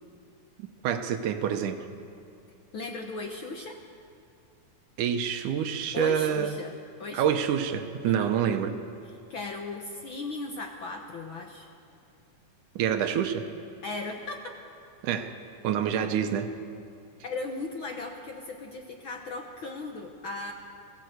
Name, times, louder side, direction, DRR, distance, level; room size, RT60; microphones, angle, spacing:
voice 1, 0.8-1.9 5.0-6.6 7.1-8.8 12.8-13.5 15.0-15.4 15.6-16.5, right 8 dB, 75° right, 7 dB, 2.4 m, -27 dB
voice 2, 2.7-3.8 5.9-7.4 8.1-8.3 9.1-11.7 13.8-14.5 17.2-20.5, left 3 dB, 70° left, 3 dB, 1.2 m, -37 dB
21.0 x 16.0 x 8.0 m, 2.4 s
omnidirectional pair, 3.8 m